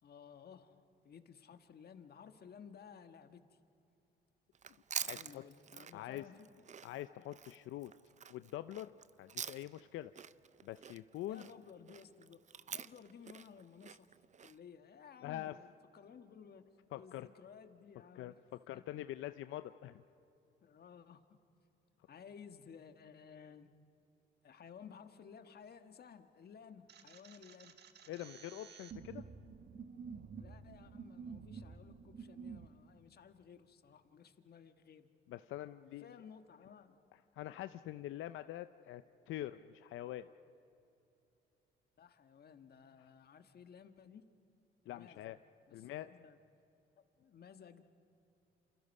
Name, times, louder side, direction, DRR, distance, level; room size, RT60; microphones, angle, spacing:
voice 1, 0.0-3.6 5.1-6.5 11.3-12.4 12.7-14.1 14.4-18.4 18.7-18.9 20.6-21.2 22.1-23.7 24.4-27.8 30.3-35.1 36.0-37.0 42.0-44.3 44.8-45.2 45.7-46.4 47.0-47.8, left 7 dB, 55° left, 9 dB, 1.5 m, -56 dB
Chewing mastication, 4.5-9.9 10.2-14.6, right 7 dB, 35° right, 0.6 m, -46 dB
voice 2, 5.0-5.4 5.9-6.2 6.8-7.9 8.3-8.9 9.2-10.1 10.6-11.4 15.2-15.6 16.9-17.3 18.1-18.3 18.7-20.0 28.1-29.2 35.3-36.2 37.3-40.3 44.9-45.4 45.7-46.1, left 14 dB, 85° left, 12 dB, 0.5 m, -44 dB
sound 1, 26.9-32.7, right 5 dB, 55° right, 1.6 m, -50 dB
28.0 x 28.0 x 5.4 m, 2.9 s
cardioid pair, 90°, 20 cm